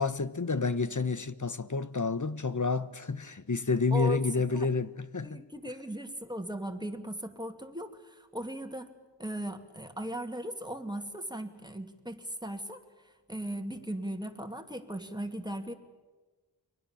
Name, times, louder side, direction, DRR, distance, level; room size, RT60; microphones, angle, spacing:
voice 1, 0.0-5.4, left 4 dB, 45° left, 1.1 m, -29 dB
voice 2, 3.9-4.2 4.5-4.7 5.2-8.9 9.2-15.7, right 1 dB, 10° right, 2.5 m, -38 dB
30.0 x 23.0 x 7.2 m
wide cardioid pair, 45°, 43 cm